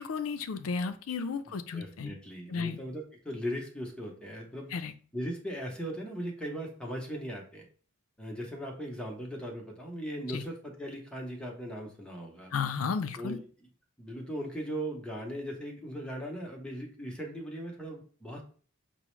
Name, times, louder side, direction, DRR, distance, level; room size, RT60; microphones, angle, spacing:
voice 1, 0.0-2.1 2.5-2.8 4.7-4.9 10.3-10.4 12.5-13.4, left 5 dB, 75° left, 10 dB, 0.4 m, -33 dB
voice 2, 1.7-4.7 5.1-7.6 8.2-12.5 13.2-13.7 14.0-18.4, equal, 5° left, -1 dB, 0.7 m, -38 dB
5.9 x 2.1 x 3.0 m, 0.42 s
head